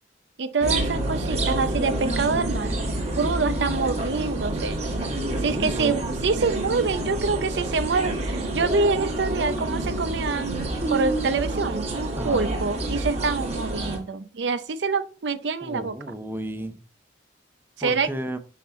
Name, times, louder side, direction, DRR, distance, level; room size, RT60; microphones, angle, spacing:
voice 1, 0.4-2.8 3.2-4.8 5.4-10.6 10.9-15.9 17.8-18.1, right 4 dB, 80° right, 0.6 m, -26 dB
sound 1, 0.6-14.0, right 2 dB, 35° right, 1.5 m, -28 dB
sound 2, 1.1-5.3, left 2 dB, 50° left, 1.1 m, -42 dB
voice 2, 5.3-6.0 12.2-12.6 15.6-16.8 17.8-18.4, right 1 dB, 10° right, 0.6 m, -33 dB
5.7 x 5.7 x 4.2 m
head